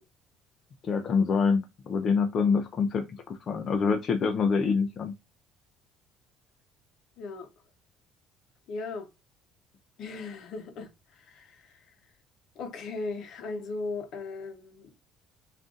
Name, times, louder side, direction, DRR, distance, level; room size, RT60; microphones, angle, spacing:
voice 1, 0.8-5.1, left 5 dB, 30° left, 0.4 m, -26 dB
voice 2, 7.2-7.5 8.7-9.1 10.0-11.8 12.6-14.9, left 3 dB, 45° left, 0.8 m, -37 dB
3.7 x 2.5 x 3.6 m
cardioid pair, 175°, 0 cm